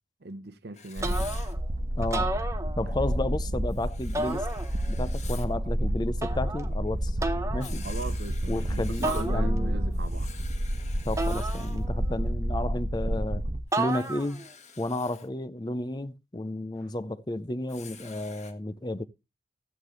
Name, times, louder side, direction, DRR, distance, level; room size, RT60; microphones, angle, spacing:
voice 1, 0.2-1.2 7.7-10.3 12.2-12.3 16.8-16.9, right 2 dB, 55° right, 0.8 m, -39 dB
Writing, 0.7-1.5 3.7-5.5 7.6-9.4 9.9-11.8 13.7-15.3 17.7-18.5, left 6 dB, 40° left, 1.5 m, -48 dB
sound 1, 1.0-1.6 2.0-3.2 4.1-5.0 6.2-6.7 7.2-7.7 9.0-9.9 11.2-12.1 13.7-14.5, right 2 dB, 15° right, 0.8 m, -33 dB
sound 2, 1.0-13.6, equal, 40° right, 1.1 m, -30 dB
voice 2, 2.0-2.3 2.8-4.5 4.9-7.2 7.5-7.8 8.5-9.8 11.0-13.4 13.8-14.4 14.8-19.1, left 1 dB, 20° left, 0.5 m, -32 dB
13.0 x 8.9 x 3.1 m
head